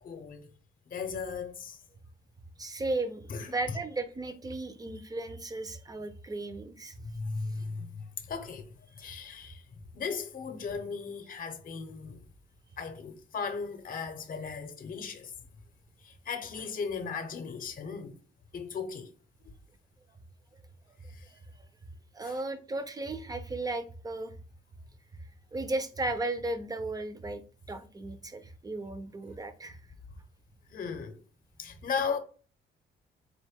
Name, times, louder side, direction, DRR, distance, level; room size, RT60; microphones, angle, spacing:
voice 1, 0.0-0.5 0.9-1.8 3.3-3.5 7.0-8.7 9.0-9.6 9.9-12.2 12.8-15.3 16.0-18.2 18.5-19.1 19.4-19.6 21.1-21.3 22.2-22.3 30.7-31.2 31.6-32.2, left 5 dB, 45° left, 0.7 m, -37 dB
voice 2, 2.6-6.9 9.0-9.1 20.5-20.6 21.0-21.4 22.1-24.3 25.5-27.4 27.7-29.8, right 2 dB, 20° right, 0.6 m, -35 dB
4.1 x 2.6 x 3.5 m
cardioid pair, 90°, 20 cm